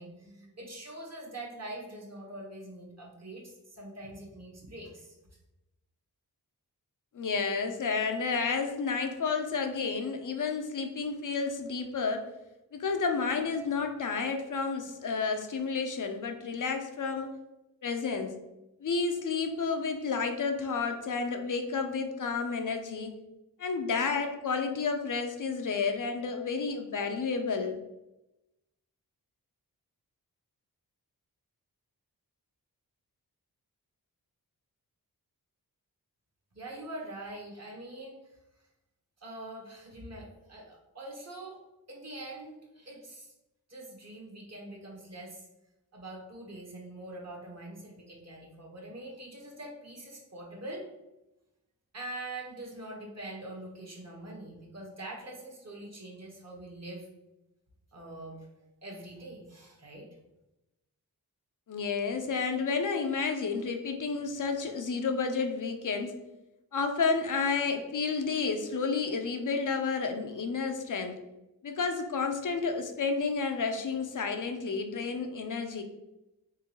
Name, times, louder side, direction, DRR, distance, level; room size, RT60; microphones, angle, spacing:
voice 1, 0.0-5.1 36.5-38.2 39.2-41.6 41.9-43.3 43.7-45.5 45.9-50.8 51.9-57.1 57.9-58.5 58.8-60.0, right 1 dB, 40° right, -1 dB, 1.3 m, -44 dB
voice 2, 7.1-12.3 12.7-17.3 17.8-18.3 18.8-23.1 23.6-27.8 61.7-66.1 66.7-71.1 71.6-75.8, left 5 dB, 55° left, 5 dB, 0.5 m, -31 dB
3.7 x 3.3 x 3.0 m, 0.95 s
cardioid pair, 55°, 38 cm